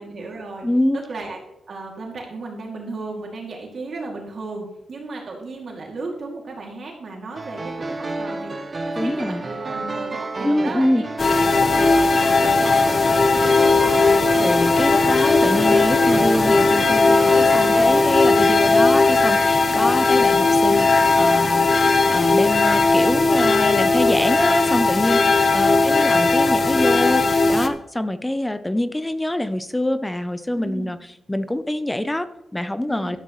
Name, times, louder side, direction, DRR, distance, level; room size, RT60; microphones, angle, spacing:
voice 1, 0.0-0.7 0.9-1.4 1.7-8.5 8.8-11.0 11.4-13.9 25.1-26.2 30.5-30.9 32.9-33.2, right 3 dB, 50° right, 0 dB, 2.4 m, -35 dB
voice 2, 0.6-1.0 9.0-9.4 10.4-11.0 14.4-21.7 22.1-31.0 31.3-33.2, left 1 dB, 10° left, 12 dB, 0.5 m, -24 dB
sound 1, 7.4-18.4, right 2 dB, 30° right, 0.9 m, -30 dB
sound 2, 11.2-27.7, left 3 dB, 35° left, 0.8 m, -17 dB
12.0 x 12.0 x 3.1 m, 0.88 s
wide cardioid pair, 150°, 0 cm